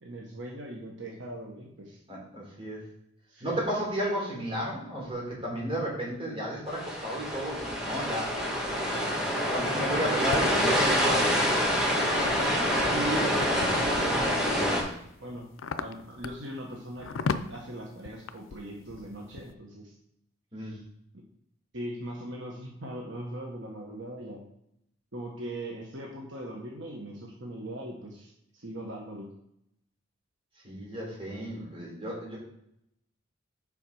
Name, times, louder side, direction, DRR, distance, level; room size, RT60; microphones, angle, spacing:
voice 1, 0.0-2.0 3.3-3.6 12.8-14.5 15.2-15.5 15.8-19.9 20.6-20.8 21.7-24.5 25.1-29.3, right 1 dB, 70° right, -1 dB, 1.4 m, -39 dB
voice 2, 2.1-2.8 3.4-8.3 9.5-11.6 20.5-20.8 30.6-32.4, equal, 30° right, -3 dB, 3.5 m, -33 dB
sound 1, 6.7-14.8, equal, 5° right, 2.3 m, -26 dB
sound 2, 9.2-10.4 11.1-13.9 14.5-19.5, left 4 dB, 85° left, 0.5 m, -37 dB
7.2 x 5.8 x 4.8 m, 0.76 s
head